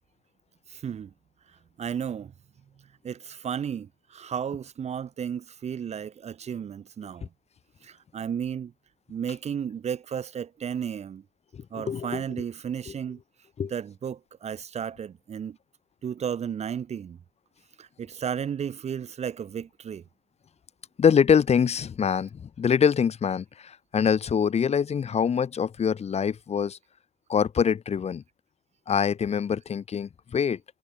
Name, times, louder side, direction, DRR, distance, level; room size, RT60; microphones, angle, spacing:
voice 1, 0.7-1.1 1.8-2.3 3.0-7.3 7.8-8.7 9.1-11.2 11.7-13.2 13.7-15.6 16.0-17.2 17.8-20.0, right 8 dB, 40° right, 1.2 m, -33 dB
voice 2, 11.5-12.4 12.9-13.0 13.6-13.7 21.0-26.8 27.3-28.2 28.9-30.6, left 7 dB, 40° left, 3.2 m, -24 dB
cardioid pair, 110°, 17 cm